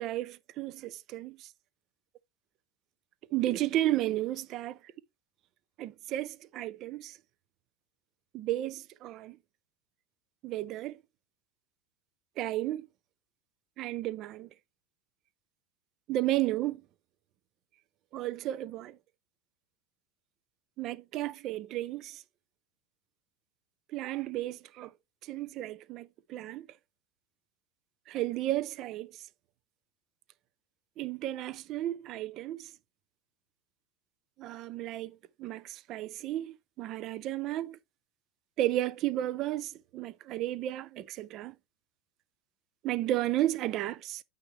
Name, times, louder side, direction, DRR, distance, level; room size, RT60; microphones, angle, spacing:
voice 1, 0.0-1.5 3.3-4.8 5.8-7.2 8.3-9.4 10.4-11.0 12.4-12.9 13.8-14.5 16.1-16.8 18.1-19.0 20.8-22.2 23.9-24.9 25.2-26.7 28.1-29.2 31.0-32.7 34.4-37.8 38.6-41.5 42.8-44.2, right 14 dB, 45° right, 0.5 m, -33 dB
8.9 x 3.6 x 3.1 m
figure-of-eight pair, 80°, 0 cm